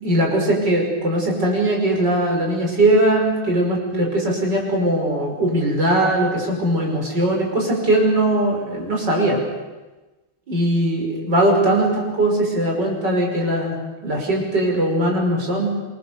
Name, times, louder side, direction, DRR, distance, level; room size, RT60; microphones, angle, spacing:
voice 1, 0.0-9.4 10.5-13.8 14.0-15.7, right 1 dB, 50° right, 0 dB, 6.5 m, -20 dB
28.0 x 23.0 x 7.0 m, 1.2 s
omnidirectional pair, 2.3 m